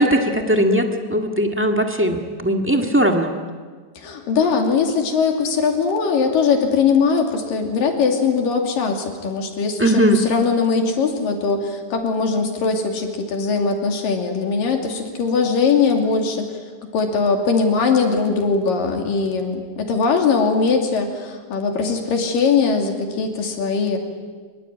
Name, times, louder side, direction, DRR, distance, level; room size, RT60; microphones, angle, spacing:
voice 1, 0.0-3.3 9.8-10.2, equal, 15° right, 3 dB, 0.4 m, -18 dB
voice 2, 4.0-16.4 16.9-24.0, left 5 dB, 80° left, 3 dB, 4.5 m, -20 dB
25.0 x 23.5 x 9.2 m, 1.5 s
omnidirectional pair, 3.9 m